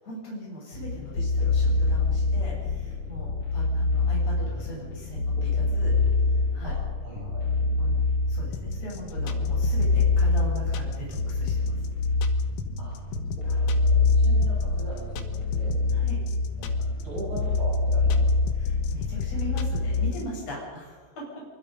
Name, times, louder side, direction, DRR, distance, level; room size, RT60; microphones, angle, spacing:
voice 1, 0.0-5.9 6.5-6.7 7.8-8.0 8.3-11.5 15.9-16.2 18.6-21.2, equal, 30° left, -4 dB, 8.7 m, -39 dB
sound 1, 0.7-20.1, left 3 dB, 50° left, 1.5 m, -25 dB
voice 2, 6.6-7.4 12.8-12.9 13.4-15.1 15.5-15.8 16.6-16.7 17.0-18.2 20.6-20.7, right 1 dB, 25° right, -7 dB, 8.6 m, -40 dB
sound 2, 8.5-20.2, left 7 dB, 80° left, 3.7 m, -38 dB
24.5 x 24.0 x 5.4 m, 1.4 s
omnidirectional pair, 5.8 m